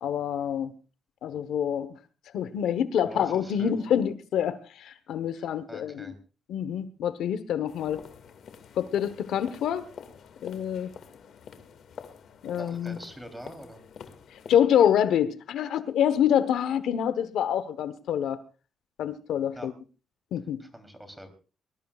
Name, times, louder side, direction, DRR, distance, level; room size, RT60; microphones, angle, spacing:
voice 1, 0.0-0.7 1.2-2.0 2.3-6.1 6.5-8.0 8.8-9.8 10.4-10.9 12.4-13.0 14.3-18.4 19.0-19.7 20.3-20.6, left 9 dB, 80° left, 12 dB, 1.1 m, -26 dB
voice 2, 3.0-3.9 5.3-6.2 12.6-13.8 19.5-19.7 20.6-21.3, equal, 5° right, 7 dB, 3.3 m, -44 dB
sound 1, 7.7-14.6, left 7 dB, 60° left, 2.0 m, -47 dB
22.5 x 21.0 x 2.4 m, 0.36 s
cardioid pair, 145°, 0 cm